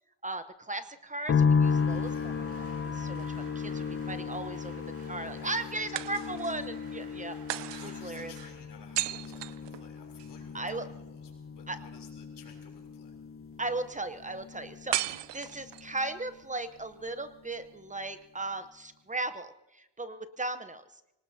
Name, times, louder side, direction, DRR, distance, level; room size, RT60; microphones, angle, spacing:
voice 1, 0.2-2.4 2.8-4.7 5.1-8.3 10.5-10.9 11.7-11.8 13.6-20.8, right 2 dB, 20° right, 10 dB, 0.8 m, -37 dB
sound 1, 1.3-16.5 16.8-17.7, left 5 dB, 30° left, 0.6 m, -34 dB
sound 2, 1.6-8.5, right 4 dB, 60° right, 7.6 m, -54 dB
voice 2, 1.9-2.4 5.4-6.4 7.7-11.3 11.5-13.1, left 6 dB, 70° left, 2 dB, 3.4 m, -54 dB
sound 3, 2.8-3.9 5.9-6.7 7.5-10.3 14.9-16.0, right 15 dB, 75° right, 0.7 m, -36 dB
25.0 x 19.0 x 2.7 m, 0.91 s
cardioid pair, 135°, 42 cm